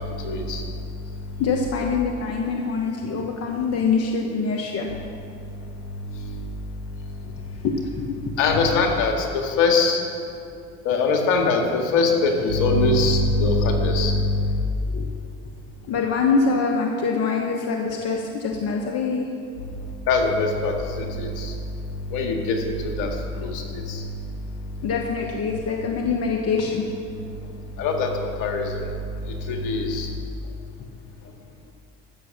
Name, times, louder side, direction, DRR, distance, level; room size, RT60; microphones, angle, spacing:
voice 1, 0.2-0.6 8.4-10.0 10.9-14.6 20.1-21.5 22.1-23.6 23.9-24.0 27.8-28.1 28.4-28.9 29.5-30.1, left 3 dB, 65° left, 2 dB, 2.0 m, -22 dB
voice 2, 1.4-4.9 7.6-8.2 8.6-8.8 14.9-15.1 15.9-19.3 24.8-26.9, left 4 dB, 45° left, 2 dB, 1.2 m, -24 dB
14.0 x 6.4 x 7.2 m, 2.5 s
hypercardioid pair, 80°, 35 cm